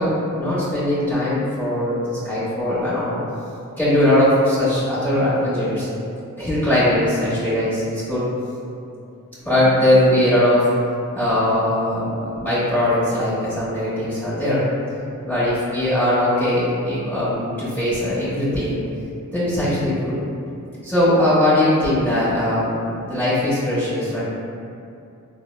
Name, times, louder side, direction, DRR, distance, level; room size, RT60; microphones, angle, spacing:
voice 1, 0.0-3.2 3.8-5.9 6.4-8.2 9.4-10.7 11.1-14.7 15.2-18.8 19.3-20.1 20.8-24.2, left 1 dB, 5° left, -13 dB, 1.1 m, -20 dB
3.9 x 2.1 x 2.2 m, 2.5 s
cardioid pair, 60°, 32 cm